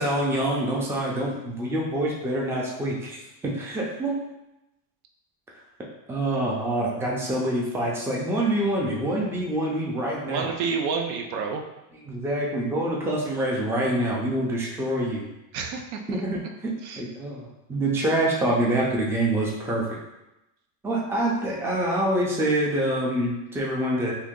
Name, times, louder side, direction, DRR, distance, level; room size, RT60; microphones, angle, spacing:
voice 1, 0.0-4.2 6.1-10.5 12.0-15.2 16.1-16.7 17.0-20.0 20.8-24.1, right 1 dB, 5° right, -3 dB, 0.4 m, -26 dB
voice 2, 10.3-11.6 15.5-16.2 16.8-17.0, right 5 dB, 90° right, 3 dB, 0.6 m, -29 dB
2.8 x 2.6 x 3.6 m, 0.94 s
cardioid pair, 130°, 45 cm